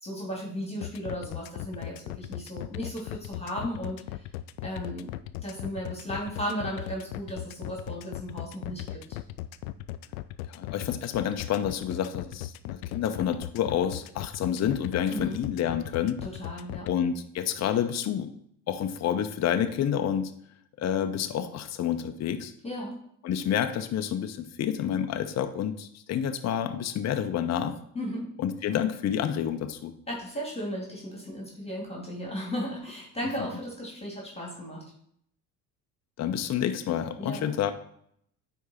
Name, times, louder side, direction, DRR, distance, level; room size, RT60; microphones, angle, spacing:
voice 1, 0.0-4.2 4.6-5.1 5.4-9.0 15.1-15.4 16.2-16.9 22.6-23.0 27.9-28.3 30.1-34.8 37.2-37.6, equal, 15° left, -2 dB, 2.7 m, -35 dB
sound 1, 0.8-16.9, left 15 dB, 70° left, 0.5 m, -37 dB
voice 2, 10.5-16.2 16.8-18.3 18.7-20.3 20.8-22.5 23.2-27.8 28.4-29.9 36.2-37.7, left 9 dB, 35° left, 8 dB, 0.8 m, -29 dB
9.3 x 3.6 x 4.3 m, 0.67 s
hypercardioid pair, 60°, 46 cm